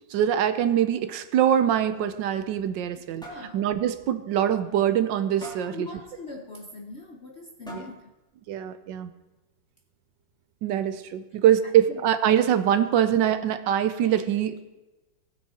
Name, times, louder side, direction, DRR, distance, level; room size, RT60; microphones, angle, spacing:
voice 1, 0.1-3.3 3.5-5.9 7.7-7.9 8.5-9.1 10.6-14.6, right 10 dB, 80° right, 11 dB, 1.3 m, -23 dB
sound 1, 2.4-3.0 3.2-3.5 4.0-4.1 4.5-4.6 5.4-5.8 6.9-7.0 7.7-8.1, right 1 dB, ahead, 1.9 m, -42 dB
voice 2, 3.2-3.6 5.7-8.1 11.9-12.0, left 3 dB, 55° left, 3 dB, 0.7 m, -42 dB
19.0 x 6.3 x 4.2 m, 1.1 s
omnidirectional pair, 2.0 m